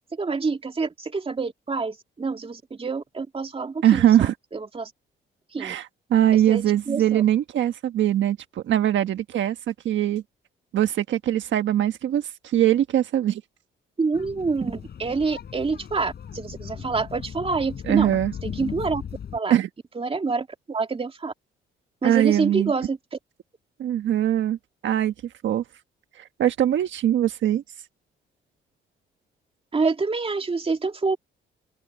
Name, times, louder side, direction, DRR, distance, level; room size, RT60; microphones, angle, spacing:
voice 1, 0.2-4.1 4.5-4.9 5.5-5.8 6.3-7.2 14.0-18.1 18.4-19.0 19.3-19.6 20.0-21.3 22.0-23.0 29.7-31.2, right 4 dB, 30° right, 2.5 m, -27 dB
voice 2, 3.8-4.3 5.6-10.2 10.7-13.4 17.8-18.3 19.5-19.7 22.0-22.7 23.8-24.6 24.8-25.1 25.4-25.6 26.2-27.6, right 11 dB, 70° right, 1.4 m, -22 dB
sound 1, 14.1-19.4, left 8 dB, 55° left, 7.3 m, -37 dB
cardioid pair, 90°, 20 cm